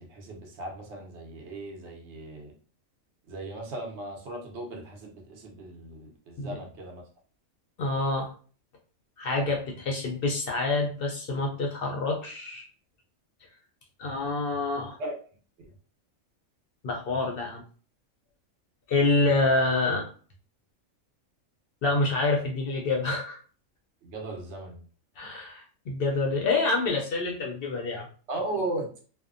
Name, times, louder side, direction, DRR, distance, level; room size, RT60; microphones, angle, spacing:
voice 1, 0.1-2.5 3.3-7.0 15.0-15.1 15.6-15.7 24.0-24.8 28.3-28.9, right 2 dB, 60° right, 0 dB, 1.0 m, -36 dB
voice 2, 7.8-8.3 9.2-12.7 14.0-15.0 16.8-17.6 18.9-20.1 21.8-23.4 25.2-28.1, left 3 dB, 65° left, 0 dB, 0.6 m, -27 dB
2.7 x 2.0 x 2.4 m, 0.40 s
omnidirectional pair, 1.4 m